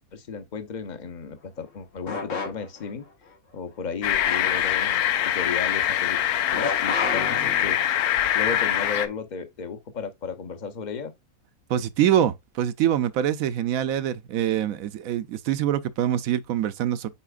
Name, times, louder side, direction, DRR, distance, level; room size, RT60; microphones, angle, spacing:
voice 1, 0.0-3.0 3.5-6.2 6.5-7.8 8.3-11.1, left 5 dB, 35° left, 0.9 m, -34 dB
sound 1, 2.1-2.9 6.5-8.1, left 4 dB, 60° left, 1.5 m, -31 dB
sound 2, 4.0-9.1, left 11 dB, 90° left, 1.1 m, -24 dB
voice 2, 11.7-17.1, right 10 dB, 75° right, 1.0 m, -24 dB
9.8 x 4.4 x 2.4 m
omnidirectional pair, 1.5 m